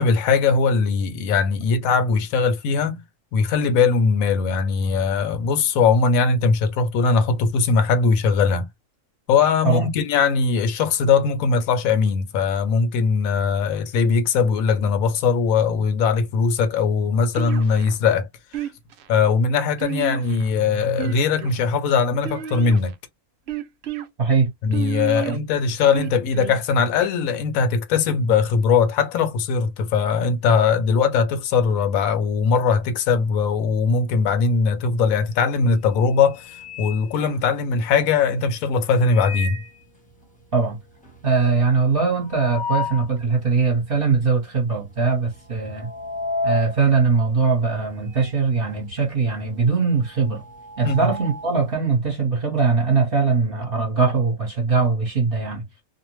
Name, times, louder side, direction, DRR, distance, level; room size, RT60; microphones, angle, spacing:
voice 1, 0.0-3.0 3.3-8.7 9.3-18.3 18.6-18.7 19.1-22.9 24.6-39.6 50.8-51.1, left 5 dB, 70° left, 1.0 m, -20 dB
sound 1, 17.3-18.0 18.5-19.1 19.8-20.5 20.9-21.6 22.2-22.9 23.5-24.1 24.7-25.4 25.9-26.6, right 10 dB, 75° right, 0.6 m, -31 dB
voice 2, 24.2-24.5 25.2-25.4 40.5-40.8 41.2-45.9 46.4-50.4 50.8-55.6, right 4 dB, 45° right, 0.9 m, -21 dB
sound 2, 35.1-35.4 35.8-37.9 38.9-39.8 40.2-40.3 40.5-40.6 41.0-43.2 43.7-43.8 44.6-44.9 45.1-48.4 48.7-51.7, left 3 dB, 5° left, 0.7 m, -32 dB
2.6 x 2.1 x 2.9 m
omnidirectional pair, 1.6 m